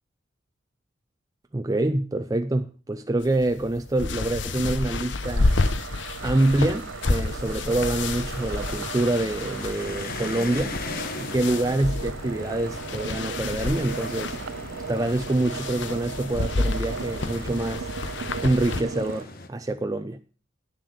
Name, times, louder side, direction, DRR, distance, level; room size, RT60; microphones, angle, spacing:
voice 1, 1.5-5.6 6.2-10.8 11.2-14.4 14.9-17.9 18.4-20.2, right 2 dB, 20° right, 0.4 m, -26 dB
sound 1, 3.2-18.8, left 3 dB, 70° left, 0.8 m, -30 dB
sound 2, 5.2-19.2, right 6 dB, 75° right, 0.5 m, -37 dB
sound 3, 6.2-19.5, left 2 dB, 50° left, 1.2 m, -39 dB
9.6 x 7.3 x 6.5 m
head